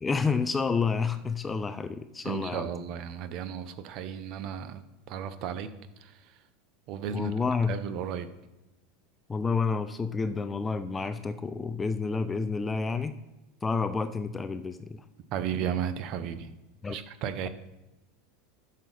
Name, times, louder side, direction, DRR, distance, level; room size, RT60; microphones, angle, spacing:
voice 1, 0.0-2.7 7.1-7.8 9.3-13.1 13.6-15.0 16.8-17.0, left 4 dB, 15° left, 10 dB, 0.4 m, -29 dB
voice 2, 2.2-4.8 5.1-5.7 6.0-6.4 6.9-7.3 7.7-8.3 15.3-16.5 16.9-17.5, right 8 dB, 45° right, 11 dB, 0.8 m, -34 dB
12.0 x 6.4 x 4.1 m, 1.0 s
supercardioid pair, 155°, 0 cm